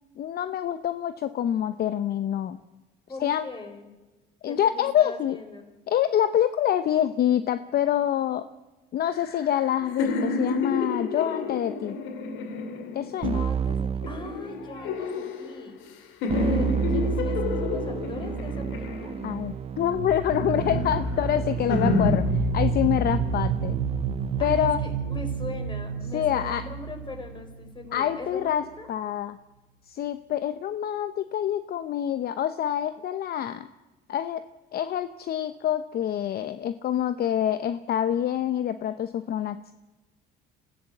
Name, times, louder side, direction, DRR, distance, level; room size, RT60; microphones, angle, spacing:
voice 1, 0.2-2.6 3.2-3.5 4.4-5.4 5.9-8.5 8.9-12.0 12.9-13.5 19.2-22.3 22.5-23.8 24.4-24.8 26.1-26.6 27.9-28.6 28.9-29.4 29.9-33.7 34.1-34.4 34.7-39.7, left 10 dB, 50° left, 12 dB, 0.8 m, -26 dB
voice 2, 3.1-3.9 4.4-5.7 11.2-11.6 13.3-15.8 16.3-19.1 24.4-28.9, left 3 dB, 25° left, 5 dB, 4.9 m, -40 dB
sound 1, 9.1-13.4 14.0-15.9 16.2-19.6 20.1-22.2, left 3 dB, 80° left, 2.8 m, -30 dB
Keyboard (musical), 13.2-14.9 16.3-24.7, right 7 dB, 30° right, 0.7 m, -31 dB
sound 2, 19.8-28.5, right 4 dB, 90° right, 2.9 m, -30 dB
25.5 x 15.5 x 7.8 m, 1.1 s
cardioid pair, 115°, 20 cm